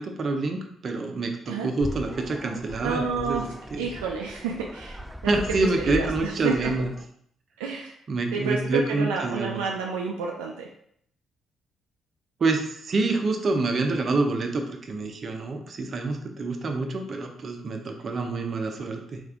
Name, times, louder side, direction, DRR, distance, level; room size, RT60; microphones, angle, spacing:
voice 1, 0.0-3.9 5.3-6.9 8.1-9.6 12.4-19.2, right 3 dB, 50° right, 4 dB, 0.7 m, -27 dB
sound 1, 1.8-7.1, equal, 5° right, 0.4 m, -38 dB
voice 2, 2.8-3.5 3.8-5.0 5.6-6.7 7.6-7.9 8.3-10.7, right 5 dB, 85° right, 0 dB, 0.4 m, -30 dB
3.5 x 3.3 x 3.6 m, 0.67 s
hypercardioid pair, 45°, 0 cm